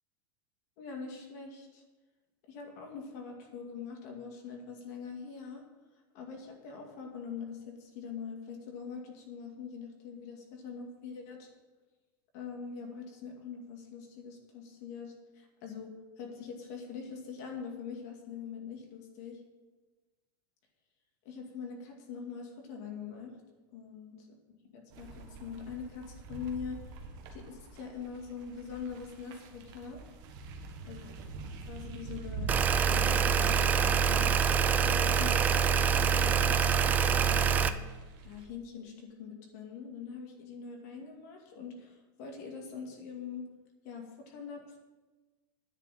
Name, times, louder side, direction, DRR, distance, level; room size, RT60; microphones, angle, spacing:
voice 1, 0.8-1.8 2.5-5.6 6.1-11.5 12.3-19.4 21.2-23.4 23.7-24.2 24.7-26.8 27.3-30.0 30.9-31.0 31.7-34.4 34.7-37.7 38.2-43.5 43.8-44.6, left 6 dB, 45° left, 1 dB, 2.3 m, -43 dB
sound 1, 24.9-38.5, right 3 dB, 35° right, 1.5 m, -46 dB
sound 2, 32.5-37.7, right 6 dB, 15° right, 0.4 m, -25 dB
10.0 x 6.8 x 9.1 m, 1.2 s
supercardioid pair, 175°, 12 cm